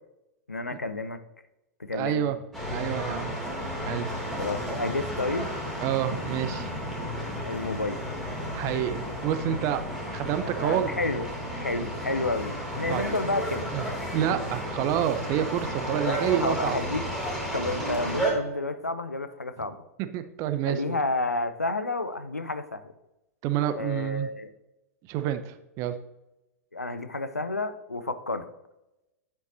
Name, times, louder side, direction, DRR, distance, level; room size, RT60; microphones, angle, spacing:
voice 1, 0.5-1.2 1.8-2.3 4.4-5.5 7.4-8.0 10.4-13.7 16.1-17.1 17.5-19.9 20.7-22.9 23.7-24.5 26.7-28.5, left 2 dB, 90° left, 12 dB, 0.6 m, -31 dB
voice 2, 1.9-2.4 2.7-3.3 3.9-4.1 5.8-6.7 8.5-9.8 10.1-10.9 12.8-13.0 13.7-13.8 14.1-16.8 20.0-21.0 23.4-24.3 25.1-25.9, right 11 dB, 40° right, 10 dB, 0.7 m, -28 dB
sound 1, 2.5-18.3, equal, 5° left, 3.0 m, -33 dB
9.2 x 8.0 x 2.8 m, 0.94 s
figure-of-eight pair, 100°, 8 cm